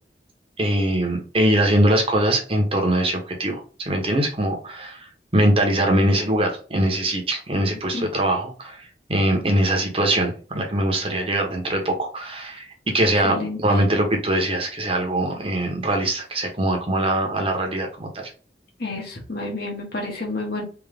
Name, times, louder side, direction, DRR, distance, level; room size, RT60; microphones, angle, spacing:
voice 1, 0.6-5.0 5.3-8.8 9.1-12.7 12.9-18.3, right 1 dB, 35° right, 2 dB, 1.0 m, -22 dB
voice 2, 13.1-13.8 18.8-20.6, left 2 dB, 60° left, 0 dB, 1.4 m, -30 dB
3.5 x 3.0 x 3.4 m, 0.37 s
head